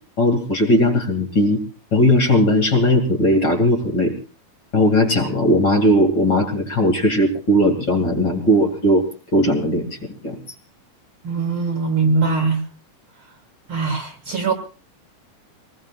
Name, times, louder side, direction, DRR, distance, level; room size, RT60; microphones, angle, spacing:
voice 1, 0.2-1.6 1.9-4.1 4.7-9.0 9.3-9.9 10.2-10.4, left 1 dB, 35° left, 2 dB, 2.9 m, -17 dB
voice 2, 11.2-12.6 13.7-14.5, right 4 dB, 45° right, 5 dB, 2.3 m, -21 dB
25.5 x 20.0 x 2.4 m, 0.35 s
omnidirectional pair, 3.8 m